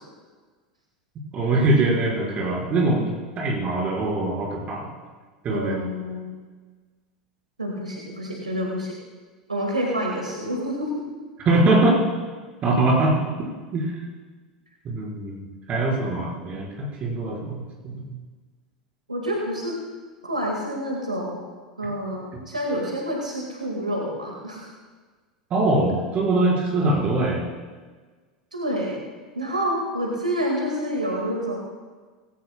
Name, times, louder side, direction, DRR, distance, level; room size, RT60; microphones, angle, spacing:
voice 1, 1.3-3.1 3.4-4.9 5.4-5.8 11.4-12.0 12.6-13.2 13.7-13.9 14.8-18.1 25.5-27.4, right 2 dB, 35° right, -3 dB, 4.7 m, -22 dB
voice 2, 5.5-6.3 7.6-8.9 9.5-10.9 19.1-19.8 20.2-21.5 21.8-24.7 28.5-29.0 29.3-31.6, equal, 80° right, 0 dB, 1.9 m, -28 dB
18.0 x 17.0 x 2.3 m, 1.4 s
figure-of-eight pair, 80°, 4 cm